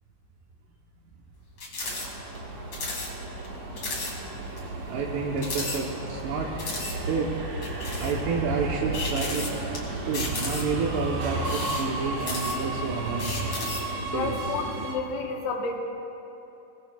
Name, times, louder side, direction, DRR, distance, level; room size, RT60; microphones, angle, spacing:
sound 1, 1.6-2.1 2.3-2.4 2.7-3.1 3.4-3.5 3.8-4.1 4.6-4.7 5.4-6.2 6.6-7.0 7.6-8.2 8.9-9.8 10.1-10.8 11.4-12.8 13.2-13.9, left 3 dB, 40° left, 2.3 m, -34 dB
Subway metro underground, 1.8-14.9, right 2 dB, 60° right, 1.7 m, -33 dB
voice 1, 4.9-6.5 7.1-7.3 8.0-9.6 10.1-13.5 14.1-14.3, right 5 dB, 75° right, -3 dB, 3.0 m, -29 dB
voice 2, 14.1-15.8, left 4 dB, 85° left, 1 dB, 3.5 m, -31 dB
22.5 x 19.0 x 2.3 m, 2.9 s
omnidirectional pair, 5.0 m